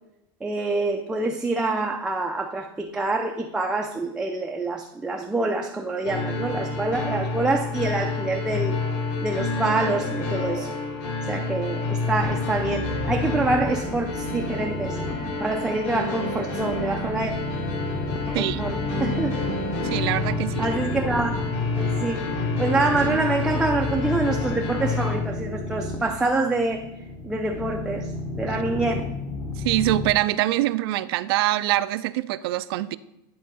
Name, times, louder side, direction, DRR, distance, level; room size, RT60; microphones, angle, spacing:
voice 1, 0.4-8.8 9.2-10.7 11.3-15.0 15.4-17.3 18.3-19.4 20.6-21.3 21.8-26.9 27.2-28.1 28.4-29.1, right 2 dB, 5° right, 0.4 m, -26 dB
sound 1, 6.0-25.2, left 3 dB, 55° left, 1.9 m, -29 dB
sound 2, 12.2-30.1, left 2 dB, 25° left, 0.9 m, -33 dB
voice 2, 18.3-18.7 19.8-20.7 29.6-33.0, right 16 dB, 75° right, 0.4 m, -24 dB
10.5 x 3.7 x 4.1 m
supercardioid pair, 155°, 13 cm